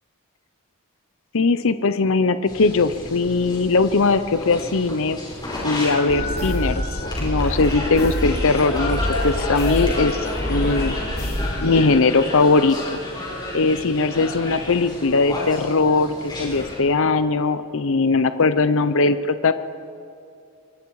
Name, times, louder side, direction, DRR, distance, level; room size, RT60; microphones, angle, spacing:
voice 1, 1.3-5.2 5.6-6.8 7.2-9.0 9.2-10.2 10.5-11.0 11.6-13.0 13.5-19.5, left 3 dB, 60° left, 12 dB, 0.7 m, -20 dB
sound 1, 2.5-16.8, left 2 dB, 20° left, 5.6 m, -32 dB
sound 2, 6.1-11.8, equal, 45° left, 2.8 m, -26 dB
25.5 x 21.5 x 4.8 m, 2.4 s
head